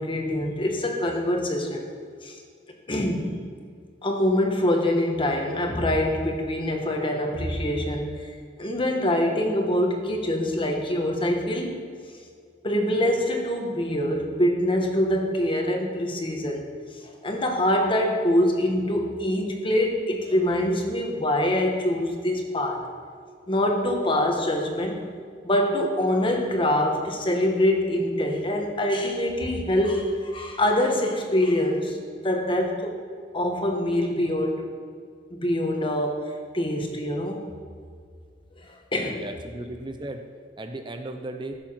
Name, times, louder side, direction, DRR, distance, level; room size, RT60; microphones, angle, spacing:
voice 1, 0.0-1.9 2.2-2.4 2.9-3.4 4.0-8.3 8.6-11.8 12.6-16.6 17.2-22.9 23.5-25.0 25.4-32.9 33.3-34.7 35.3-37.4 38.6-39.2, left 1 dB, 30° left, 2 dB, 1.5 m, -24 dB
voice 2, 39.0-40.3 40.6-41.5, right 1 dB, 25° right, 5 dB, 0.7 m, -36 dB
15.0 x 7.4 x 5.8 m, 2.1 s
head